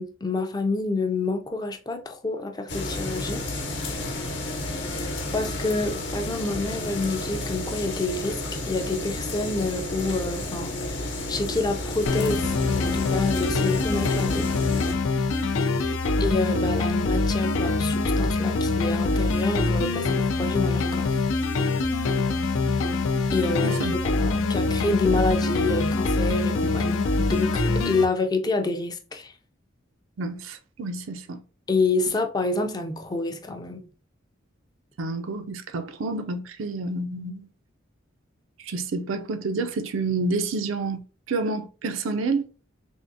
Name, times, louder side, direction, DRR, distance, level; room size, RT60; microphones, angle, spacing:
voice 1, 0.0-3.5 4.7-12.5 12.8-14.5 16.2-21.2 23.3-23.8 24.1-29.3 31.7-33.9, left 3 dB, 20° left, 0.4 m, -28 dB
sound 1, 2.7-14.9, left 1 dB, 60° left, 0.9 m, -31 dB
sound 2, 12.1-28.1, left 3 dB, 85° left, 0.5 m, -24 dB
voice 2, 23.6-23.9 30.2-31.4 35.0-37.5 38.6-41.0 41.3-42.5, right 3 dB, 80° right, 0.5 m, -29 dB
3.6 x 3.3 x 2.6 m
head